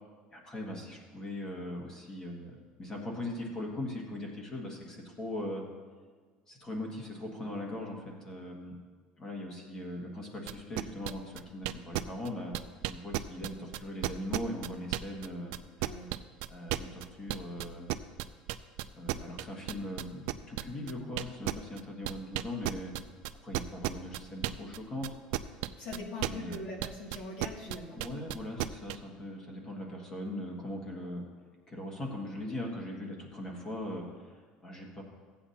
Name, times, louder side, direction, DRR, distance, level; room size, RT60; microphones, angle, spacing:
voice 1, 0.3-5.6 6.5-8.7 9.2-12.5 12.9-15.5 16.5-17.9 18.9-22.9 23.4-25.1 26.2-26.6 27.9-31.2 31.7-35.0, left 1 dB, 20° left, 0 dB, 1.8 m, -40 dB
sound 1, 10.5-15.3 15.5-24.8 25.0-29.0, right 17 dB, 75° right, 0.4 m, -33 dB
voice 2, 25.8-28.0, left 2 dB, 50° left, -2 dB, 2.3 m, -41 dB
15.5 x 8.5 x 2.8 m, 1.5 s
cardioid pair, 160°, 3 cm